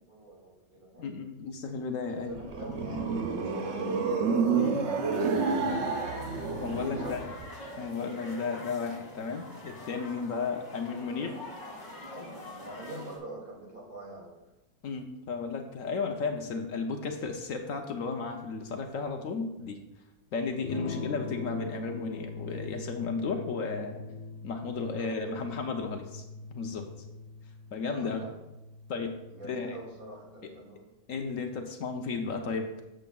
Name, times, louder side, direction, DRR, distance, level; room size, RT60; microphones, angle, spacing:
voice 1, 0.0-1.1 2.1-6.0 6.9-7.2 7.6-7.8 12.1-14.3 20.8-21.1 24.7-25.5 28.0-28.3 29.3-30.9, right 1 dB, 35° right, -4 dB, 2.7 m, -45 dB
voice 2, 1.0-2.4 4.5-4.9 6.6-7.3 7.8-11.4 14.8-19.8 20.3-24.0 24.4-26.2 26.5-26.9 27.7-28.3 28.9-29.2 29.4-29.8 31.1-32.7, left 4 dB, 65° left, 4 dB, 1.1 m, -34 dB
sound 1, 2.2-7.5, right 5 dB, 55° right, 1.0 m, -29 dB
sound 2, 5.1-13.2, left 1 dB, 25° left, 2.6 m, -45 dB
Electric guitar / Strum, 20.7-30.4, left 3 dB, 90° left, 1.5 m, -42 dB
12.5 x 7.7 x 2.3 m, 0.97 s
omnidirectional pair, 1.5 m